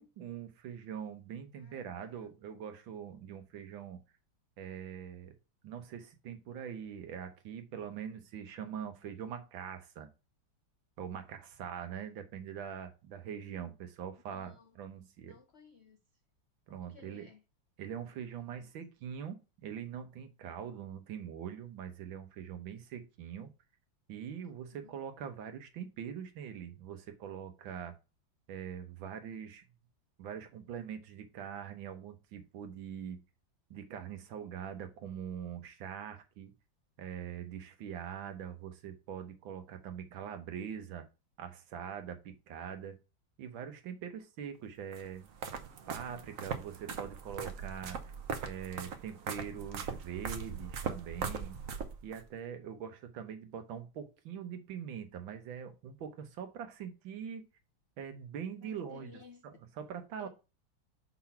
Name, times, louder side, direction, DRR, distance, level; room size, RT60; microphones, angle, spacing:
voice 1, 0.0-4.0 4.6-5.3 5.6-10.1 11.0-15.4 16.7-17.3 17.8-23.5 24.1-28.0 28.5-29.6 30.2-33.2 33.7-36.5 37.0-41.1 41.4-43.0 43.4-45.3 45.9-48.0 48.4-51.6 52.0-57.4 58.0-60.3, right 8 dB, 80° right, 1.8 m, -43 dB
voice 2, 1.5-2.3 14.3-14.8 15.3-16.0 16.8-17.4 24.4-24.9 46.0-46.3 46.7-47.1 58.6-59.6, left 5 dB, 90° left, 0.5 m, -58 dB
sound 1, 44.9-52.2, right 6 dB, 55° right, 1.0 m, -40 dB
5.4 x 4.1 x 5.7 m
omnidirectional pair, 2.1 m